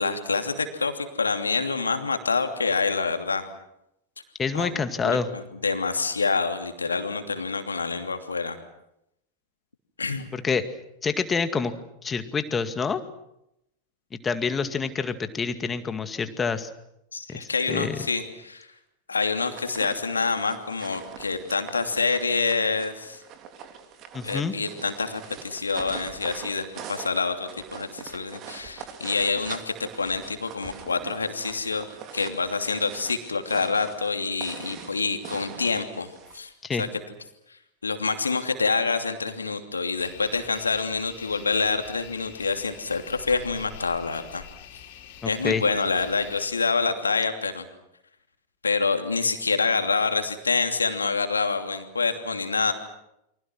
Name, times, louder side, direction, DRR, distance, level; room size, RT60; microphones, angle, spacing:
voice 1, 0.0-3.4 4.6-8.6 10.0-10.3 17.1-18.7 19.1-23.2 24.2-31.9 32.1-36.1 36.3-36.5 36.8-36.9 37.8-44.4 45.2-47.6 48.6-52.7, left 4 dB, 75° left, 6 dB, 2.8 m, -27 dB
voice 2, 4.4-5.3 10.3-10.6 11.0-11.7 12.0-13.0 14.2-16.7 17.3-18.0 24.1-24.5 36.6-36.9 45.2-45.6, left 5 dB, 20° left, 10 dB, 2.1 m, -27 dB
sound 1, 19.3-36.4, right 7 dB, 35° right, 3.3 m, -43 dB
sound 2, 40.0-46.5, left 9 dB, 50° left, 4.7 m, -46 dB
29.5 x 24.5 x 6.2 m, 0.82 s
figure-of-eight pair, 90°, 0 cm